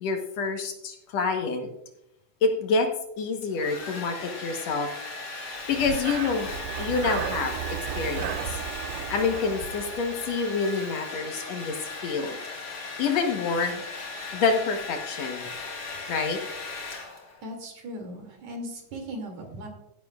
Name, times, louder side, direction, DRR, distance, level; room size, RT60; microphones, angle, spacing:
voice 1, 0.0-1.7 2.4-2.9 3.2-4.9 5.7-8.4 9.1-11.8 12.0-12.4 13.0-13.8 14.3-15.5 16.1-16.4, left 4 dB, 65° left, 5 dB, 2.1 m, -27 dB
Domestic sounds home sounds, 3.2-17.5, left 3 dB, 40° left, 2.1 m, -37 dB
Breathing, 5.7-10.6, right 12 dB, 85° right, 1.4 m, -35 dB
voice 2, 17.4-19.7, equal, 65° right, 2 dB, 3.6 m, -38 dB
15.5 x 11.0 x 2.3 m, 0.83 s
omnidirectional pair, 3.4 m